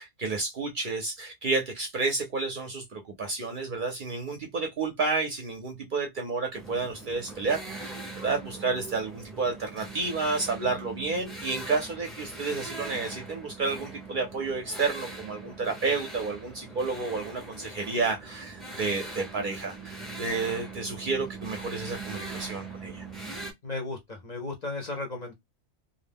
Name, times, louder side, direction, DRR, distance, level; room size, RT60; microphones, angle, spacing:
voice 1, 0.0-23.0, right 3 dB, 55° right, 0.6 m, -31 dB
sound 1, 6.5-23.5, right 3 dB, ahead, 0.4 m, -41 dB
voice 2, 23.6-25.3, left 2 dB, 45° left, 0.6 m, -35 dB
2.4 x 2.0 x 3.4 m
omnidirectional pair, 1.2 m